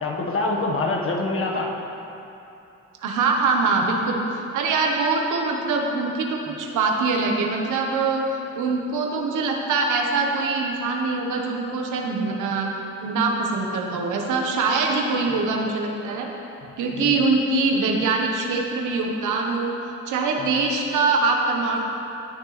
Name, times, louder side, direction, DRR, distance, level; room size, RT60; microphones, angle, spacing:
voice 1, 0.0-1.7 6.5-6.6 16.9-17.3 20.4-20.6, left 2 dB, 45° left, -1 dB, 1.6 m, -26 dB
voice 2, 3.0-12.7 13.0-16.3 16.8-19.7 20.1-21.8, right 3 dB, 80° right, 1 dB, 1.3 m, -23 dB
18.0 x 6.7 x 3.3 m, 2.9 s
cardioid pair, 90°, 30 cm